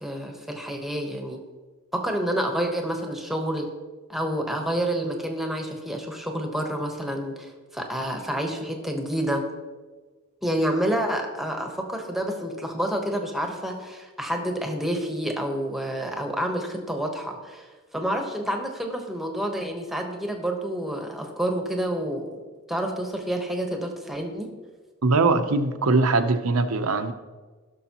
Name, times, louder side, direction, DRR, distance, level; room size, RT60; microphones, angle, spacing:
voice 1, 0.0-1.4 1.9-3.7 4.1-9.5 10.4-17.7 17.9-22.4 22.7-24.5, right 1 dB, ahead, 2 dB, 1.1 m, -28 dB
voice 2, 25.0-27.1, right 3 dB, 85° right, 8 dB, 0.8 m, -21 dB
16.0 x 6.3 x 3.0 m, 1.3 s
head